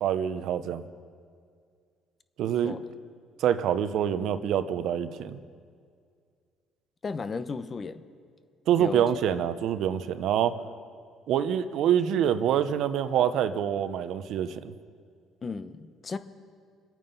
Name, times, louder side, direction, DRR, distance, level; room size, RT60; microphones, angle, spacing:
voice 1, 0.0-0.8 2.4-2.8 3.4-5.4 8.7-10.6 11.3-14.7, right 9 dB, 70° right, 12 dB, 0.8 m, -26 dB
voice 2, 7.0-8.0 8.8-9.1 15.4-16.2, left 4 dB, 35° left, 11 dB, 0.9 m, -34 dB
26.0 x 9.1 x 5.5 m, 2.1 s
supercardioid pair, 80°, 0 cm